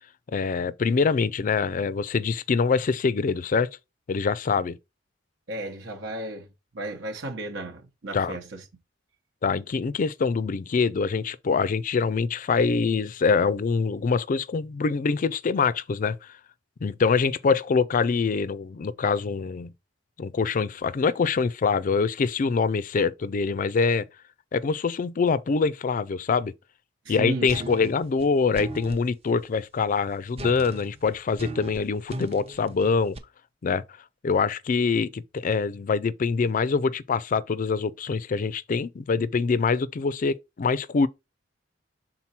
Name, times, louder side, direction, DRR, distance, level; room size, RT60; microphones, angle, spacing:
voice 1, 0.3-3.7 4.1-4.8 8.1-8.4 9.4-16.3 16.8-19.7 20.2-24.1 24.5-26.5 27.1-33.2 33.6-33.8 34.2-41.1, left 5 dB, 45° left, 0.4 m, -24 dB
voice 2, 5.5-6.5 6.7-8.7 27.0-27.9, right 2 dB, 75° right, 1.0 m, -34 dB
sound 1, 27.5-29.1 30.4-33.2, right 1 dB, 30° right, 0.7 m, -38 dB
5.9 x 3.9 x 4.2 m
head